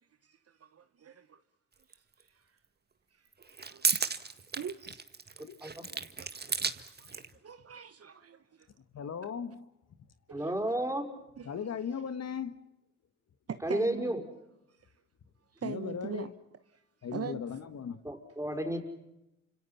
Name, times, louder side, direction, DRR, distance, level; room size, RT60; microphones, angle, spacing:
voice 1, 0.2-1.4 2.2-2.3 3.5-4.1 4.6-5.0 5.9-6.4 6.7-8.7 10.3-10.5 11.4-11.5 13.5-14.1 15.5-16.3 17.1-17.4, right 7 dB, 45° right, 1.3 m, -42 dB
sound 1, 1.9-2.0 3.3-7.3, right 4 dB, 30° right, 1.8 m, -34 dB
voice 2, 8.9-9.7 11.5-12.6 15.6-16.3 17.0-18.0, left 7 dB, 50° left, 1.5 m, -37 dB
voice 3, 10.3-11.1 13.6-14.2 18.0-18.8, right 1 dB, 10° right, 5.7 m, -32 dB
29.5 x 26.5 x 5.9 m
supercardioid pair, 60°, 34 cm